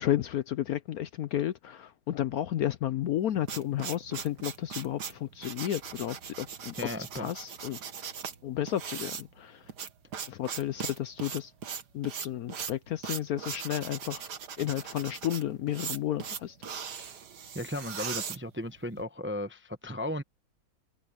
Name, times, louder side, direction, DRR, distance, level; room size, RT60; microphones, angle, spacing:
voice 1, 0.0-6.8 7.1-7.8 8.4-9.7 10.3-11.5 11.9-14.3 14.6-16.6, left 12 dB, 65° left, 1.0 m, -32 dB
sound 1, 3.1-19.0, right 7 dB, 65° right, 2.0 m, -39 dB
voice 2, 6.8-7.3 17.5-20.2, left 1 dB, 10° right, 0.6 m, -35 dB
omnidirectional pair, 1.9 m